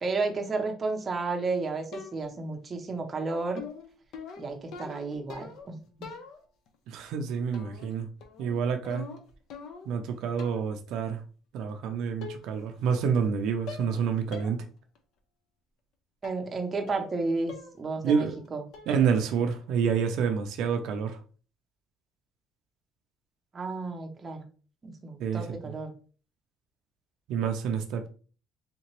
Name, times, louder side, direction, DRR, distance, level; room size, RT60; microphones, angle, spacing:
voice 1, 0.0-3.6 4.4-5.8 16.2-18.3 18.5-18.6 23.5-24.5 24.8-25.9, right 3 dB, 20° right, 3 dB, 0.6 m, -32 dB
sound 1, 1.9-2.5 3.6-5.7 6.0-6.7 7.5-7.9 8.2-10.0 10.4-10.8 11.7-11.8 12.2-12.7 12.9-13.3 13.7-14.0 14.3-14.6 15.0-15.1 16.2-16.5 16.9-17.2 17.5-17.8 18.1-18.5 18.7-19.1, left 5 dB, 60° left, 0.6 m, -44 dB
voice 2, 6.9-8.1 8.4-9.1 9.9-11.2 11.5-14.6 18.0-18.4 18.9-21.2 25.2-25.5 27.3-28.1, right 6 dB, 65° right, 5 dB, 0.4 m, -28 dB
3.5 x 2.9 x 2.9 m, 0.39 s
cardioid pair, 160°, 0 cm